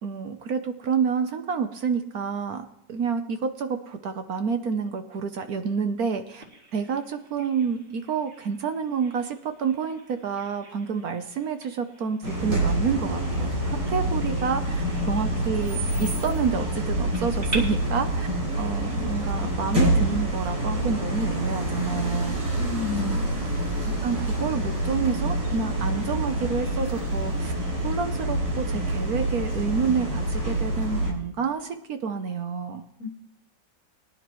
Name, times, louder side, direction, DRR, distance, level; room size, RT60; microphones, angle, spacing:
voice 1, 0.0-6.4 6.7-13.5 13.9-18.3 18.6-22.4 24.0-27.5 27.8-32.8, right 6 dB, 60° right, 8 dB, 1.2 m, -28 dB
Bird vocalization bird call bird song, 6.4-17.6, right 3 dB, 30° right, 3.0 m, -45 dB
sound 1, 12.2-31.1, right 1 dB, 85° right, 4.8 m, -27 dB
voice 2, 22.6-23.4 33.0-33.1, left 5 dB, 60° left, 6 dB, 1.6 m, -31 dB
22.0 x 10.5 x 3.1 m, 0.76 s
omnidirectional pair, 1.9 m